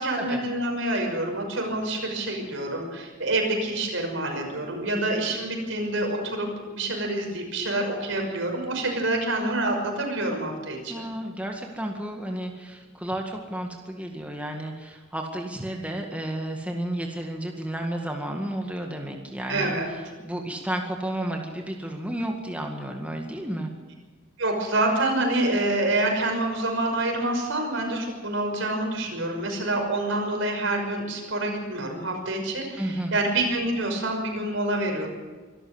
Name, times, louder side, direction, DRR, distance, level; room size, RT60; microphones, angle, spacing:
voice 1, 0.0-11.0 19.5-19.9 24.4-35.1, right 2 dB, 70° right, 2 dB, 5.9 m, -27 dB
voice 2, 10.9-23.7 32.8-33.1, right 1 dB, 5° right, 2 dB, 1.9 m, -32 dB
24.5 x 13.5 x 8.0 m, 1.4 s
head